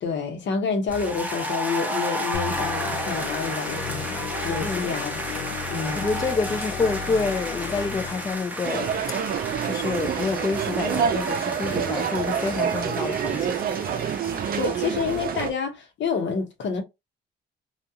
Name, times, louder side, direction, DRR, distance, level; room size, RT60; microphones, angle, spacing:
voice 1, 0.0-6.1 14.6-16.8, left 5 dB, 65° left, 0.9 m, -29 dB
sound 1, 0.9-15.5, right 1 dB, 10° right, 0.8 m, -33 dB
sound 2, 2.3-8.8, left 6 dB, 90° left, 0.5 m, -34 dB
voice 2, 4.6-4.9 6.0-8.9 9.6-13.6, left 4 dB, 20° left, 0.3 m, -28 dB
sound 3, 8.6-15.5, right 8 dB, 50° right, 0.5 m, -27 dB
2.3 x 2.3 x 2.7 m
cardioid pair, 90°, 20 cm